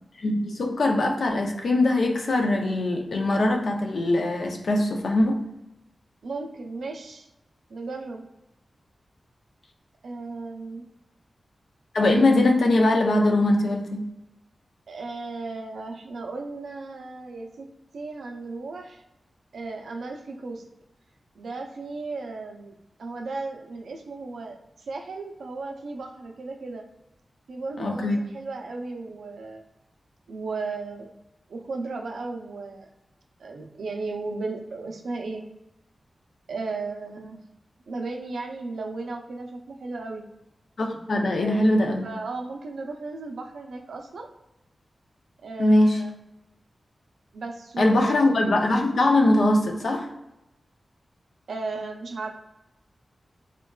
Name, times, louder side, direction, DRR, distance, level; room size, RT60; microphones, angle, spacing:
voice 1, 0.2-5.4 11.9-14.1 27.8-28.2 40.8-42.1 45.6-46.0 47.8-50.1, left 1 dB, 75° left, 2 dB, 0.5 m, -21 dB
voice 2, 6.2-7.3 7.7-8.2 10.0-10.9 14.9-17.7 17.9-19.0 19.5-20.6 21.4-26.9 27.5-29.6 30.3-31.1 31.5-32.9 33.4-35.5 36.5-37.4 37.9-40.3 41.2-44.3 45.4-46.1 47.3-48.3 51.5-52.3, right 3 dB, 90° right, 3 dB, 0.4 m, -35 dB
3.7 x 2.2 x 2.2 m, 0.92 s
cardioid pair, 65°, 0 cm